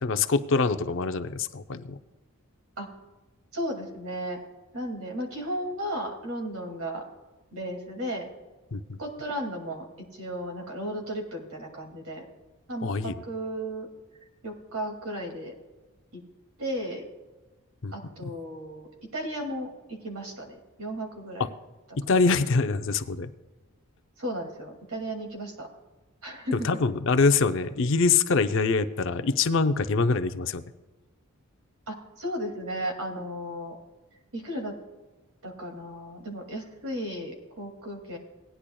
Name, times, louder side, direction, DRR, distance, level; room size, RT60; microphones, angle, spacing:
voice 1, 0.0-2.0 8.7-9.0 12.8-13.2 17.8-17.9 18.2-18.3 21.4-21.5 22.0-23.3 26.6-30.6, left 4 dB, 55° left, 10 dB, 0.5 m, -24 dB
voice 2, 3.5-4.4 4.7-7.0 7.5-8.3 9.0-12.3 12.7-13.9 14.4-15.5 16.1-16.2 16.6-17.0 17.9-18.9 19.1-21.5 24.2-25.7 26.2-26.5 31.9-33.8 34.3-34.8 35.4-38.2, equal, 75° right, 2 dB, 2.3 m, -34 dB
18.0 x 10.0 x 2.3 m, 1.2 s
head